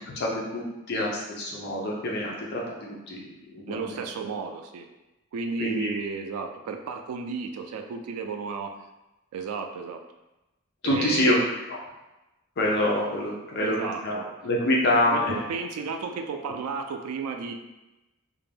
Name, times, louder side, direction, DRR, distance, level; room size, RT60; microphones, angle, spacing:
voice 1, 0.2-3.3 3.5-4.0 5.6-5.9 10.8-11.4 11.7-11.8 12.6-15.4, left 1 dB, 50° left, -2 dB, 0.4 m, -26 dB
voice 2, 3.7-4.9 5.3-8.7 9.3-10.0 10.8-11.5 13.6-14.3 15.1-17.5, right 5 dB, 90° right, 5 dB, 0.3 m, -33 dB
2.5 x 2.1 x 3.2 m, 1.0 s
head